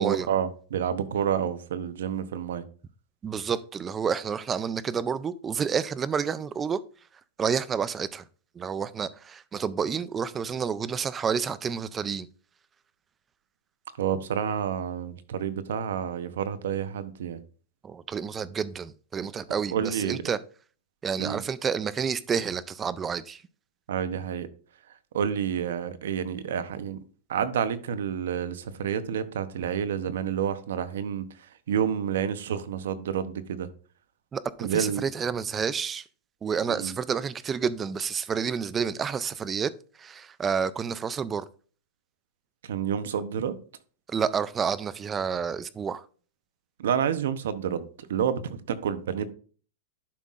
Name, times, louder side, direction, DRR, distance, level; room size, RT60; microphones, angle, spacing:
voice 1, 0.0-2.6 14.0-17.4 19.5-20.2 21.1-21.4 23.9-24.5 25.1-27.0 27.3-33.7 34.6-35.0 36.7-36.9 42.6-43.6 46.8-49.3, right 8 dB, 90° right, 0.8 m, -29 dB
voice 2, 3.2-6.8 7.4-8.2 8.6-12.3 17.8-20.4 21.0-23.4 34.3-36.1 36.4-39.7 40.0-41.5 44.1-46.0, right 6 dB, 15° right, 0.3 m, -29 dB
11.5 x 5.5 x 2.5 m
supercardioid pair, 160°, 0 cm